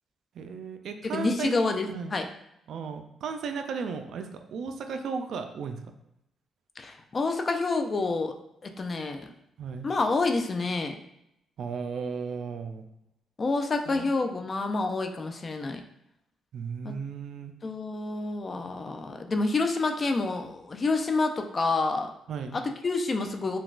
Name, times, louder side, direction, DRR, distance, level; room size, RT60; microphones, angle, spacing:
voice 1, 0.4-2.2 2.7-5.8 9.6-9.9 11.6-12.8 13.9-14.1 16.5-17.5 22.3-22.6, right 5 dB, 70° right, 6 dB, 0.3 m, -35 dB
voice 2, 1.1-2.3 6.8-8.3 8.6-9.3 9.8-11.0 13.4-15.8 16.8-16.9 17.6-22.1 22.5-23.6, left 3 dB, 35° left, 5 dB, 0.3 m, -28 dB
3.9 x 2.2 x 2.4 m, 0.80 s
cardioid pair, 90°, 0 cm